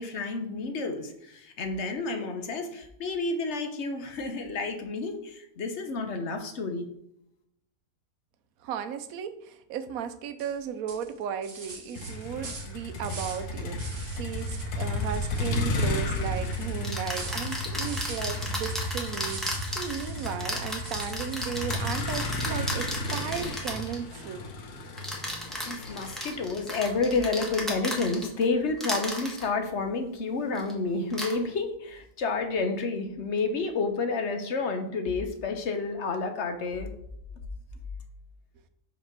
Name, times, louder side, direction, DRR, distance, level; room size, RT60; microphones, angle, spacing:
voice 1, 0.0-6.9 25.6-36.9, left 3 dB, 55° left, 6 dB, 1.0 m, -30 dB
voice 2, 8.6-24.4, right 8 dB, 70° right, 10 dB, 1.0 m, -35 dB
sound 1, 10.4-10.6 10.9-13.5 13.8-14.7 15.0-20.4 20.8-21.8, right 4 dB, 40° right, 1.1 m, -44 dB
Motor vehicle (road), 11.9-28.1, left 2 dB, 80° left, 1.5 m, -33 dB
sound 2, 15.8-16.0 16.8-24.0 25.0-28.4 28.8-29.5 30.5-30.7 31.1-31.3, equal, ahead, 1.1 m, -34 dB
5.2 x 4.2 x 5.9 m, 0.77 s
omnidirectional pair, 1.6 m